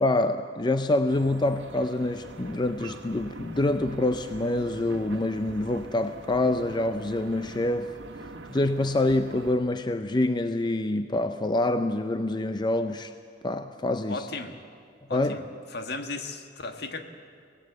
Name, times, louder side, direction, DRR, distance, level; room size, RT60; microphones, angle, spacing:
voice 1, 0.0-7.9 8.5-13.1 13.4-14.3 15.1-15.4, left 2 dB, 25° left, 9 dB, 0.5 m, -26 dB
sound 1, 1.1-9.5, right 2 dB, 85° right, 1.4 m, -44 dB
voice 2, 14.1-14.6 15.1-15.5 15.7-17.0, left 3 dB, 60° left, 6 dB, 1.5 m, -35 dB
25.0 x 18.0 x 7.8 m, 2.3 s
head